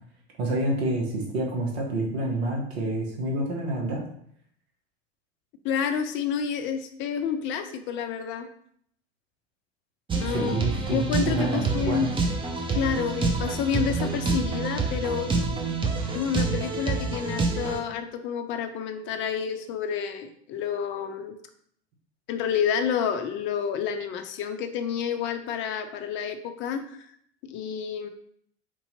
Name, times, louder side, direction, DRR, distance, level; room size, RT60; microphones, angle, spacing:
voice 1, 0.4-4.0 10.3-12.1, right 1 dB, 65° right, 0 dB, 1.2 m, -28 dB
voice 2, 5.6-8.5 10.2-10.5 10.9-12.1 12.7-15.3 16.1-21.4 22.3-26.8 27.4-28.1, left 7 dB, 35° left, 7 dB, 0.6 m, -29 dB
sound 1, 10.1-17.8, right 3 dB, 15° right, 0.7 m, -27 dB
4.5 x 2.8 x 4.1 m, 0.66 s
figure-of-eight pair, 90°, 34 cm